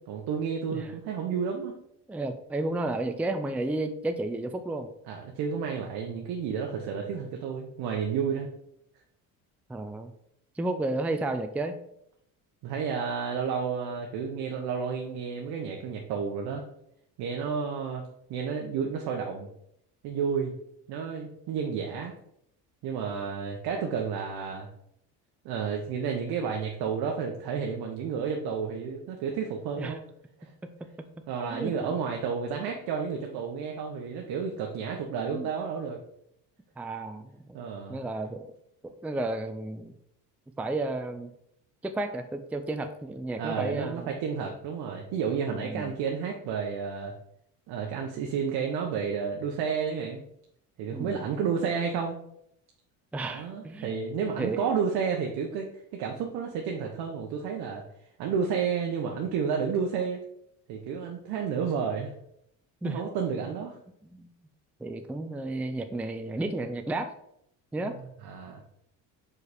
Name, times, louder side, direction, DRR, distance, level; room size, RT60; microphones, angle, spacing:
voice 1, 0.1-1.7 5.1-8.5 12.6-16.6 17.2-18.0 18.3-19.5 20.0-20.5 20.9-22.1 22.8-24.7 25.4-30.0 30.4-30.5 31.3-36.0 37.5-38.0 43.4-47.1 47.7-50.2 50.8-52.2 53.3-57.8 58.2-60.2 60.7-62.1 62.8-63.8 67.8-67.9 68.2-68.6, right 6 dB, 70° right, 1 dB, 1.0 m, -31 dB
voice 2, 2.1-4.9 9.7-10.1 10.6-11.7 29.8-30.0 31.5-31.9 35.3-35.5 36.8-37.6 37.9-38.5 38.8-39.9 40.6-41.3 41.8-44.1 45.5-45.9 50.9-51.3 53.1-53.9 54.4-54.6 62.8-63.0 63.4-63.5 64.1-64.3 64.8-67.1 67.7-67.9, right 2 dB, 5° right, 7 dB, 0.4 m, -32 dB
4.9 x 4.6 x 4.9 m, 0.74 s
cardioid pair, 100°, 39 cm